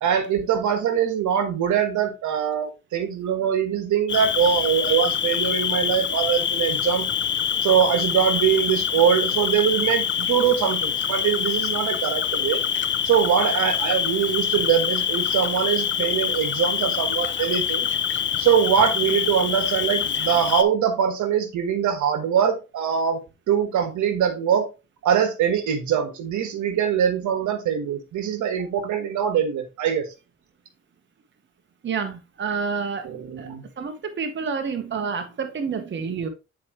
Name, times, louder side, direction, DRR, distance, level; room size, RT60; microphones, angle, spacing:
voice 1, 0.0-7.0 7.6-12.6 13.0-17.9 18.4-23.2 23.5-24.6 25.0-30.0 33.0-33.6, right 8 dB, 75° right, 1.4 m, -22 dB
Cricket, 4.1-20.6, left 8 dB, 40° left, 0.6 m, -25 dB
voice 2, 31.8-33.1 33.4-33.5 33.8-36.3, right 5 dB, 40° right, 1.1 m, -28 dB
8.5 x 4.5 x 2.9 m
cardioid pair, 90°, 30 cm